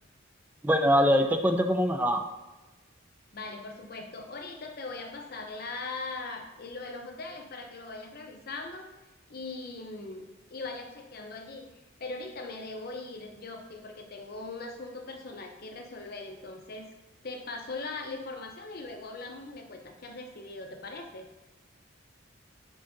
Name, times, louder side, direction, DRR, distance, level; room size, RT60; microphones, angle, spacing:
voice 1, 0.6-2.3, equal, 10° right, 5 dB, 0.4 m, -23 dB
voice 2, 3.3-8.9 9.3-11.7 12.0-16.9 17.2-21.3, left 3 dB, 50° left, 4 dB, 0.7 m, -40 dB
10.0 x 3.8 x 2.6 m, 1.1 s
head